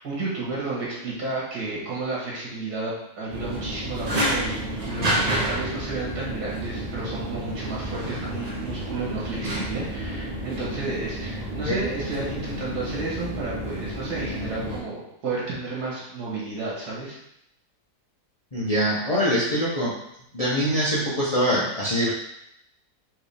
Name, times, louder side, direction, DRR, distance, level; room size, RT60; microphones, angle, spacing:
voice 1, 0.0-17.2, right 3 dB, 90° right, -5 dB, 1.9 m, -32 dB
sound 1, 3.3-14.8, right 1 dB, 35° right, 0.8 m, -30 dB
voice 2, 18.5-19.9 20.3-22.1, equal, 30° left, -7 dB, 0.7 m, -23 dB
4.6 x 3.3 x 3.4 m, 0.79 s
omnidirectional pair, 1.6 m